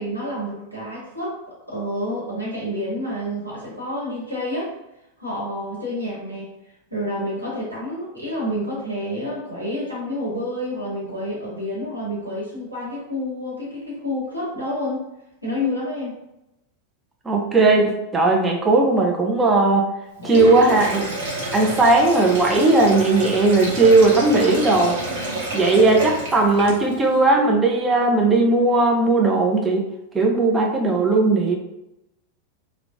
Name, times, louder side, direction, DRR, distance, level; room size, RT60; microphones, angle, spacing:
voice 1, 0.0-4.7 5.2-6.5 6.9-15.0 15.4-16.2 20.2-20.8, left 1 dB, 90° right, -6 dB, 1.0 m, -29 dB
voice 2, 17.3-19.8 20.2-21.1 21.5-25.0 25.5-29.8 30.1-31.6, right 2 dB, 15° right, 1 dB, 0.3 m, -17 dB
Sink (filling or washing), 20.2-27.0, right 2 dB, 55° right, 0.7 m, -28 dB
3.0 x 2.0 x 2.4 m, 0.89 s
figure-of-eight pair, 90°, 0 cm